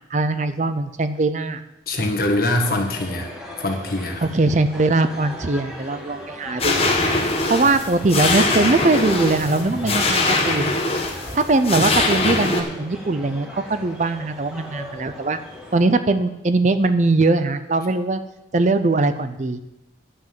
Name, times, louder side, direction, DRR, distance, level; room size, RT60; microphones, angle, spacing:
voice 1, 0.1-1.6 4.2-10.8 11.3-15.4 15.7-18.2 18.5-19.6, right 2 dB, 40° right, 11 dB, 0.6 m, -21 dB
voice 2, 1.9-3.3 3.6-4.2, left 1 dB, 55° left, 3 dB, 1.7 m, -23 dB
sound 1, 2.5-15.9, left 1 dB, 5° right, 1.9 m, -37 dB
sound 2, 6.6-12.6, left 2 dB, 35° left, 1.4 m, -22 dB
11.0 x 6.1 x 7.5 m, 0.91 s
head